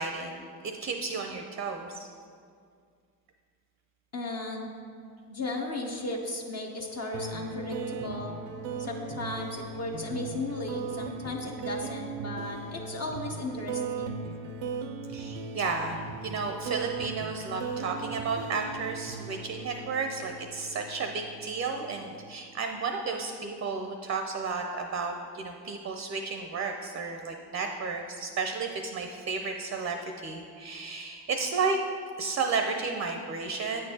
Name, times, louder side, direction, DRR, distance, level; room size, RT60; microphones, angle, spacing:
voice 1, 0.0-2.1 15.1-31.8 32.2-33.9, right 4 dB, 30° right, 4 dB, 0.5 m, -33 dB
voice 2, 4.1-4.7 5.3-8.3 8.8-14.2, left 2 dB, 35° left, 0 dB, 0.7 m, -35 dB
sound 1, 7.1-22.2, right 4 dB, 85° right, 0.5 m, -38 dB
8.2 x 4.4 x 2.8 m, 2.2 s
supercardioid pair, 70°, 42 cm